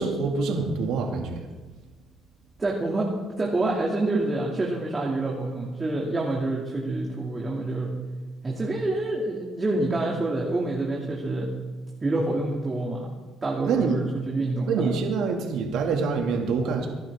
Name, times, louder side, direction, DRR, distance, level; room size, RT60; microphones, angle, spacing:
voice 1, 0.0-1.4 13.6-14.0 14.7-16.9, right 5 dB, 80° right, 1 dB, 2.3 m, -26 dB
voice 2, 2.6-7.9 8.4-11.5 12.0-13.1 13.4-15.0, right 2 dB, 25° right, -2 dB, 2.6 m, -27 dB
24.5 x 11.5 x 3.7 m, 1.3 s
cardioid pair, 90°, 0 cm